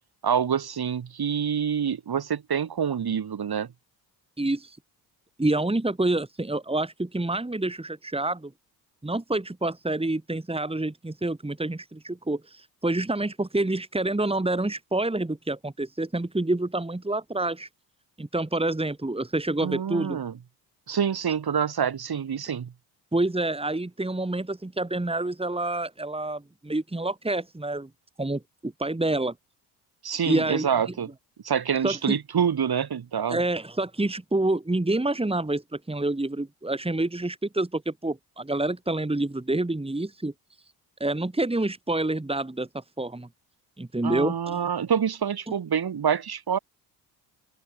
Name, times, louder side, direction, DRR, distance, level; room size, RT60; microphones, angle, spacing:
voice 1, 0.2-3.7 19.6-20.3 20.9-22.7 30.0-31.1 31.4-33.4 44.0-46.6, right 7 dB, 50° right, 7.4 m, -26 dB
voice 2, 4.4-4.8 5.4-8.5 9.0-17.7 18.2-20.2 23.1-27.9 28.2-29.3 30.2-30.7 31.8-32.2 33.3-40.3 41.0-43.3 43.8-44.6, right 2 dB, 10° right, 3.6 m, -27 dB
open air
hypercardioid pair, 55°, 47 cm